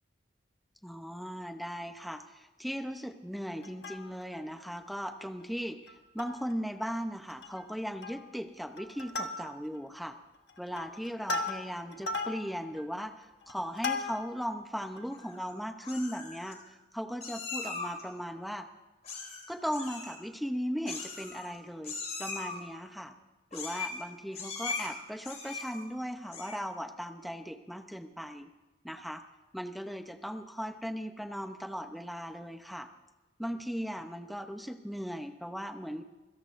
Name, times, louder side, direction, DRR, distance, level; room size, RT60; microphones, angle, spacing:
voice 1, 0.8-10.2 10.6-18.7 19.5-23.1 23.5-28.5 28.8-29.2 29.5-32.9 33.4-36.0, equal, ahead, 6 dB, 0.8 m, -38 dB
Plucked string instrument, 3.6-4.4 4.9-5.0 5.2-5.4 5.9-6.5 6.8-7.0 7.3-7.7 8.0-8.4 8.8-9.8 10.3-14.5 15.0-15.1, left 3 dB, 70° left, 1.3 m, -37 dB
Meow, 15.1-15.5 15.8-16.5 17.2-18.0 19.0-19.4 19.7-20.1 20.9-21.6 21.8-22.6 23.5-24.0 24.3-24.9 25.2-25.8 26.2-26.7, left 4 dB, 40° left, 3.5 m, -39 dB
26.0 x 17.0 x 2.6 m, 1.1 s
head